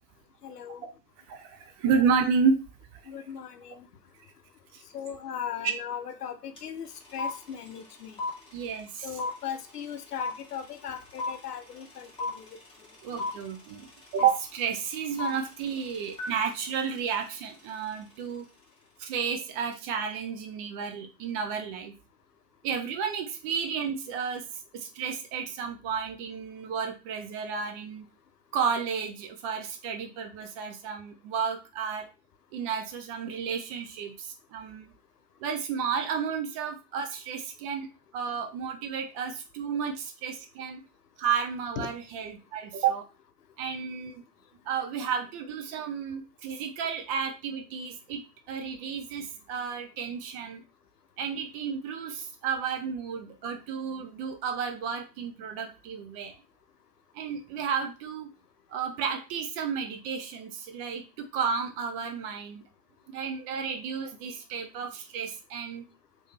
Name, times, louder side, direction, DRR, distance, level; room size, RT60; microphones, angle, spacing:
voice 1, 0.4-0.9 3.1-3.9 4.9-8.2 9.0-12.5 41.8-41.9, left 8 dB, 80° left, 9 dB, 0.7 m, -38 dB
voice 2, 1.3-2.7 2.9-3.0 4.7-4.8 8.5-9.1 13.0-18.5 19.0-21.9 22.6-28.1 28.5-32.1 32.5-34.9 35.4-37.9 38.1-40.8 41.2-43.1 43.6-44.2 44.7-50.6 51.2-56.3 57.1-58.3 58.7-62.6 63.1-65.9, right 6 dB, 25° right, 5 dB, 0.4 m, -32 dB
sound 1, 6.6-6.7 6.8-18.0, left 3 dB, 10° left, 1.5 m, -36 dB
3.1 x 2.9 x 3.2 m, 0.31 s
figure-of-eight pair, 95°, 46 cm